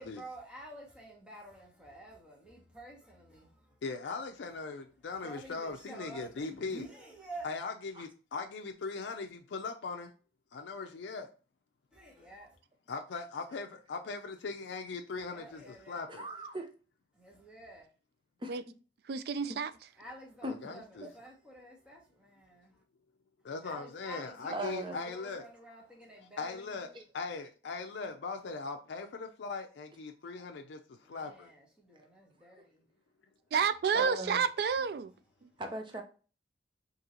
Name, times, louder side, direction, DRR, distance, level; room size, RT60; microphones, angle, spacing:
voice 1, 0.0-3.8 5.1-7.5 11.9-12.6 15.1-16.1 17.1-17.9 20.0-22.8 23.6-27.0 31.0-32.9, right 1 dB, 5° right, 0.9 m, -50 dB
voice 2, 3.8-6.8 7.4-10.1 10.5-11.3 12.9-16.2 20.4-21.1 23.4-25.4 26.4-26.9 27.1-30.8 31.1-31.5, left 4 dB, 80° left, 0.4 m, -40 dB
voice 3, 16.1-16.7 18.4-18.5 19.5-19.6 20.4-20.5 21.0-21.1 24.5-25.0 26.9-27.0 33.9-34.5 35.6-36.0, right 1 dB, 25° right, 0.7 m, -38 dB
voice 4, 19.1-19.7 33.5-35.1 35.4-35.5, right 6 dB, 60° right, 0.3 m, -30 dB
3.8 x 2.9 x 2.8 m
head